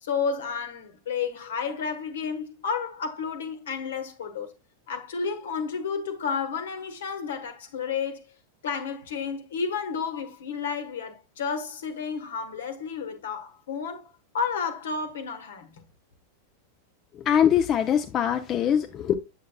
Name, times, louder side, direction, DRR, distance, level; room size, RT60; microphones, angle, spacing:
voice 1, 0.0-4.5 4.9-8.3 8.6-15.7, left 6 dB, 60° left, 1.2 m, -31 dB
voice 2, 17.2-19.1, left 9 dB, 30° left, 0.5 m, -23 dB
8.1 x 7.4 x 2.2 m
figure-of-eight pair, 90°, 0 cm